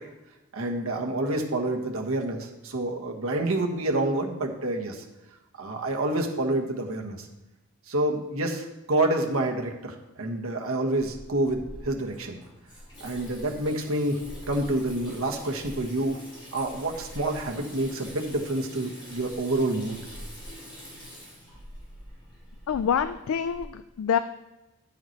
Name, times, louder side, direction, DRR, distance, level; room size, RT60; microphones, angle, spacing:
voice 1, 0.5-5.0 5.6-7.3 7.9-12.4 13.0-14.2 14.5-16.2 16.5-20.0, right 2 dB, 75° right, 2 dB, 1.3 m, -28 dB
Water tap faucet / Sink (filling or washing), 11.0-23.6, equal, 20° left, 3.5 m, -44 dB
voice 2, 22.7-24.2, left 7 dB, 80° left, 11 dB, 0.3 m, -26 dB
10.0 x 5.6 x 4.5 m, 1.0 s
head